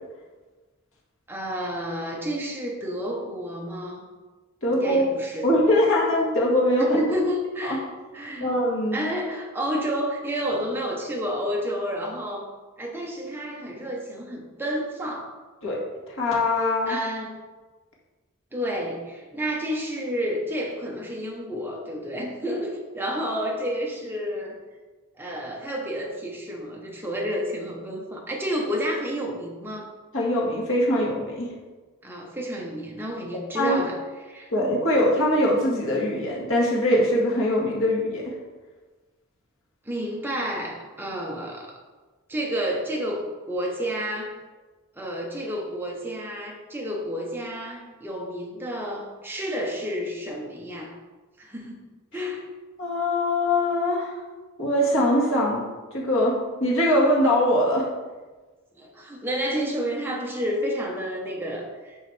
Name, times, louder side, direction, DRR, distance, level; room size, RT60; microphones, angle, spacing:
voice 1, 1.3-4.1 4.7-5.5 6.8-7.8 8.1-8.5 8.9-12.4 12.8-15.3 16.6-17.4 18.5-24.6 25.2-29.9 32.0-34.0 34.3-34.5 39.8-41.8 42.3-43.2 43.5-44.4 45.0-51.0 51.4-51.8 52.1-52.5 58.8-62.0, equal, 10° right, -1 dB, 1.0 m, -30 dB
voice 2, 4.6-5.1 5.4-7.0 7.6-7.8 8.4-9.0 15.6-15.8 16.1-17.0 30.1-31.5 33.3-33.8 34.5-38.3 52.8-54.1 54.6-55.6 55.9-57.9, left 1 dB, 65° left, -4 dB, 1.9 m, -22 dB
11.0 x 4.1 x 3.3 m, 1.3 s
head